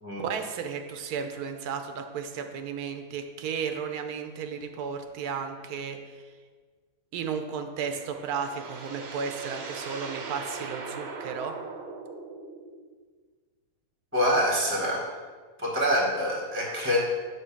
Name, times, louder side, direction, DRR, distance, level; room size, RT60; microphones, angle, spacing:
voice 1, 0.2-6.2 7.1-11.6, right 6 dB, 85° right, 6 dB, 1.1 m, -34 dB
sound 1, 7.7-12.8, right 4 dB, 55° right, 0.8 m, -40 dB
voice 2, 14.1-15.1 15.6-17.0, equal, 10° right, -2 dB, 0.9 m, -25 dB
6.9 x 3.1 x 5.7 m, 1.5 s
omnidirectional pair, 1.6 m